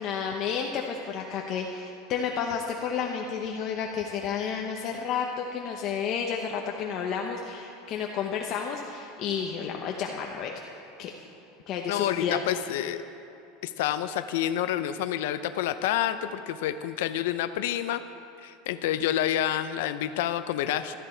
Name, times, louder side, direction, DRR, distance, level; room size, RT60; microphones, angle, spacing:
voice 1, 0.0-10.5 11.0-11.1 11.7-12.4, left 7 dB, 35° left, 1 dB, 0.9 m, -31 dB
voice 2, 11.9-13.0 13.6-18.0 18.4-21.0, left 11 dB, 75° left, 10 dB, 0.6 m, -28 dB
17.5 x 13.0 x 4.5 m, 2.9 s
supercardioid pair, 170°, 0 cm